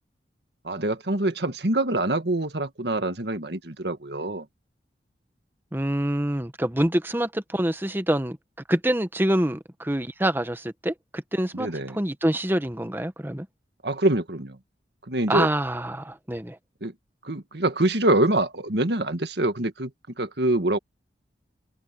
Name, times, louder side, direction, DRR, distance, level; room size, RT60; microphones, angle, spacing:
voice 1, 0.6-4.4 11.5-12.0 13.8-14.6 15.1-15.5 16.8-16.9 17.2-19.9 20.2-20.8, right 1 dB, 70° right, 1.8 m, -25 dB
voice 2, 5.7-8.4 8.7-13.5 15.3-16.6, right 1 dB, 10° right, 1.0 m, -26 dB
open air
head